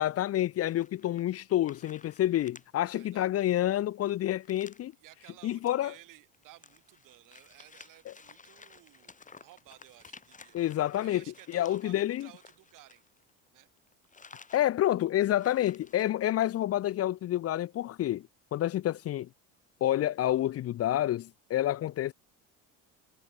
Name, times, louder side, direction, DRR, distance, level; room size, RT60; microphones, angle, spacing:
voice 1, 0.0-4.9 5.4-5.9 8.1-8.2 10.5-12.3 14.5-19.3 19.8-22.1, left 13 dB, 45° left, 0.7 m, -28 dB
sound 1, 0.6-1.4 1.7-2.7 3.0-3.1 3.4-4.9 5.5-5.7 6.1-13.5 13.8-14.7 15.0-15.1 15.3-16.5, left 5 dB, 20° left, 2.5 m, -55 dB
voice 2, 2.8-3.3 5.0-10.6 10.9-13.0 13.5-13.7, right 16 dB, 65° right, 4.9 m, -56 dB
supercardioid pair, 100°, 34 cm